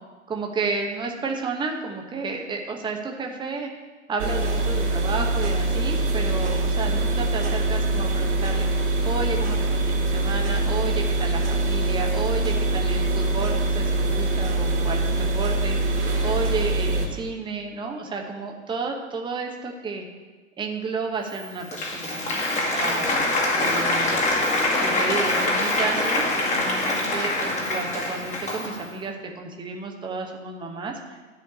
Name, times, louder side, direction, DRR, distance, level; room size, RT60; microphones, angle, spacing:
voice 1, 0.3-3.7 4.1-16.0 16.2-20.0 20.6-23.1 23.5-24.3 24.8-31.2, right 4 dB, 10° right, 2 dB, 1.2 m, -31 dB
sound 1, 4.2-17.1, right 2 dB, 65° right, 2.9 m, -23 dB
Applause, 21.3-28.9, left 2 dB, 20° left, 2.0 m, -24 dB
11.0 x 5.0 x 8.2 m, 1.3 s
figure-of-eight pair, 100°, 37 cm